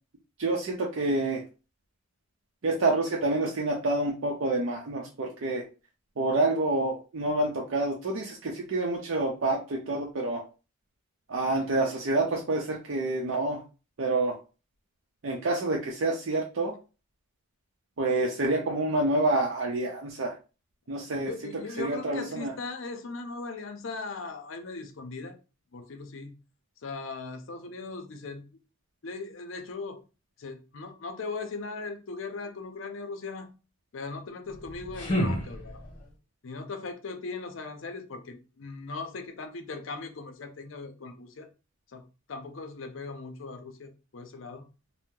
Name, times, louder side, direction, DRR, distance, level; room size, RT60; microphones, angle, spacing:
voice 1, 0.4-1.4 2.6-5.6 6.2-10.4 11.3-13.6 14.0-14.4 15.2-16.7 18.0-20.3 20.9-21.5 21.8-22.5, right 2 dB, 75° right, 0.6 m, -28 dB
voice 2, 21.1-25.4 25.7-26.3 26.8-28.4 29.0-30.0 30.4-33.5 33.9-35.8 36.4-41.5 41.9-42.0 42.3-44.6, left 3 dB, 70° left, 0.5 m, -39 dB
sound 1, 34.5-36.1, equal, 40° left, 0.9 m, -31 dB
2.7 x 2.1 x 3.6 m
head